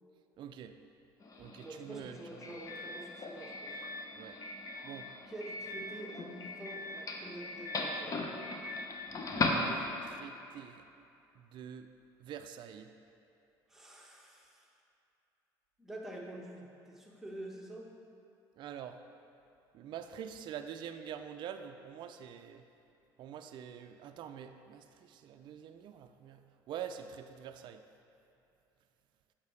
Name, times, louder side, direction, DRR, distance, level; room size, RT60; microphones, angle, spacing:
voice 1, 0.4-0.8 1.4-2.6 4.1-4.4 4.8-5.1 9.5-10.9 11.4-11.9 12.2-12.9 18.6-19.0 19.7-22.6 23.2-27.8, right 9 dB, 50° right, 7 dB, 0.4 m, -46 dB
Doorbell, 1.2-10.2, left 2 dB, 35° left, 0.8 m, -38 dB
voice 2, 1.6-3.8 5.2-8.2 13.7-14.7 15.8-17.9, right 1 dB, 5° right, -2 dB, 1.2 m, -47 dB
8.2 x 5.6 x 3.2 m, 2.7 s
supercardioid pair, 90°, 10 cm